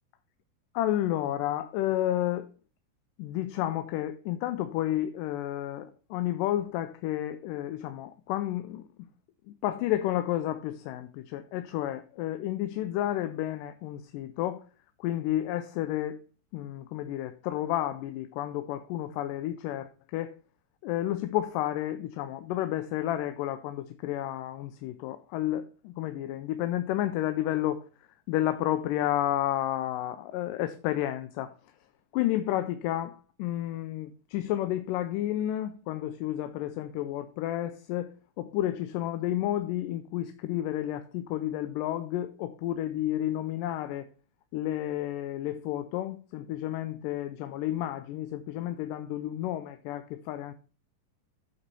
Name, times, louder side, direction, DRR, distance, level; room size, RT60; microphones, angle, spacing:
voice 1, 0.8-2.5 3.2-8.9 9.6-14.6 15.0-16.2 16.5-20.3 20.8-27.8 28.3-31.5 32.1-38.1 38.4-44.1 44.5-50.5, left 13 dB, 85° left, 2.2 m, -31 dB
8.2 x 4.2 x 6.7 m
omnidirectional pair, 3.8 m